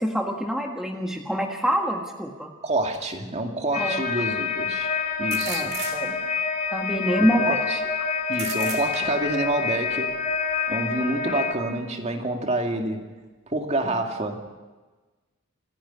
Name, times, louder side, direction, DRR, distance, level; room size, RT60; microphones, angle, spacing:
voice 1, 0.0-2.5 3.8-4.0 5.5-6.1 6.7-7.6 11.3-11.4, equal, ahead, 1 dB, 1.6 m, -26 dB
voice 2, 2.6-4.9 5.2-5.7 7.2-7.8 8.3-10.2 10.7-13.0 13.5-14.5, right 2 dB, 30° right, 3 dB, 2.3 m, -27 dB
sound 1, 2.9-3.0 5.3-6.4 8.3-9.4, right 7 dB, 45° right, 2.9 m, -35 dB
sound 2, 3.7-11.6, left 5 dB, 35° left, 2.7 m, -27 dB
27.5 x 10.0 x 9.8 m, 1.3 s
head